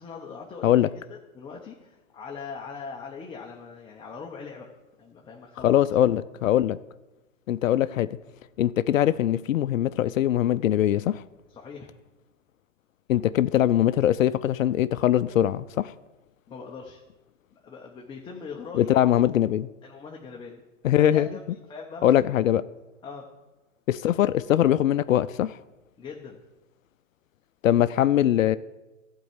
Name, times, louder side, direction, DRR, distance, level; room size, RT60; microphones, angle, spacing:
voice 1, 0.0-4.7 5.0-5.8 11.5-11.9 16.5-17.0 17.6-19.1 19.8-20.6 20.9-22.5 23.0-23.3 26.0-26.4, left 5 dB, 10° left, 0.9 m, -41 dB
voice 2, 5.6-6.8 7.5-8.1 8.6-11.2 13.1-15.9 18.7-19.7 20.8-21.3 22.0-22.6 23.9-25.6 27.6-28.6, left 12 dB, 80° left, 0.5 m, -22 dB
12.0 x 4.5 x 8.1 m
hypercardioid pair, 130°, 39 cm